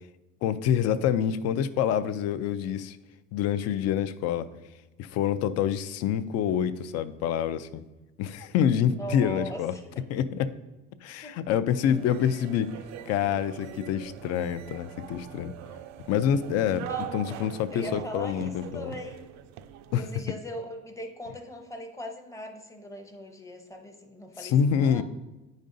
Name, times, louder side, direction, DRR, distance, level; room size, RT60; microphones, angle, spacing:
voice 1, 0.4-3.0 3.3-4.5 5.0-7.8 8.2-9.7 10.1-10.5 11.0-12.7 13.1-15.5 16.1-16.9 17.1-18.9 19.9-20.0 24.4-25.0, left 9 dB, 55° left, 14 dB, 0.4 m, -26 dB
voice 2, 8.8-10.0 11.2-11.3 16.6-19.2 20.0-25.0, equal, 10° left, 4 dB, 0.6 m, -40 dB
sound 1, 11.9-20.1, right 11 dB, 60° right, 0.4 m, -42 dB
9.2 x 5.2 x 2.6 m, 1.1 s
cardioid pair, 135°, 30 cm